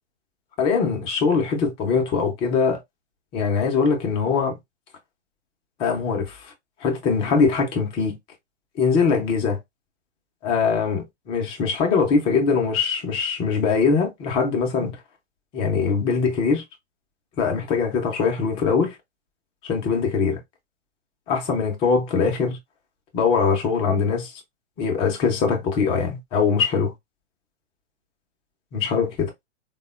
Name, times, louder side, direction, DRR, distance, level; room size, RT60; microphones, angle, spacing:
voice 1, 0.6-2.8 3.3-4.6 5.8-6.5 6.8-8.2 8.8-9.6 10.4-15.0 15.5-16.6 17.4-19.0 19.6-20.4 21.3-22.6 23.1-24.4 24.8-26.9 28.7-29.3, left 5 dB, 15° left, 0.5 m, -22 dB
3.4 x 2.1 x 2.3 m
hypercardioid pair, 130°, 36 cm